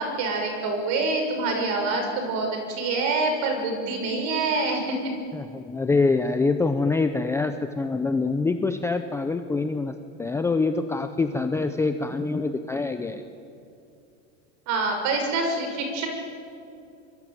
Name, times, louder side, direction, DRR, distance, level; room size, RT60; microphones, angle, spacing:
voice 1, 0.0-5.0 14.7-16.1, right 3 dB, 45° right, 4 dB, 6.7 m, -26 dB
voice 2, 5.3-13.2, left 3 dB, 5° left, 7 dB, 0.6 m, -25 dB
25.5 x 23.5 x 9.2 m, 2.6 s
supercardioid pair, 165°, 39 cm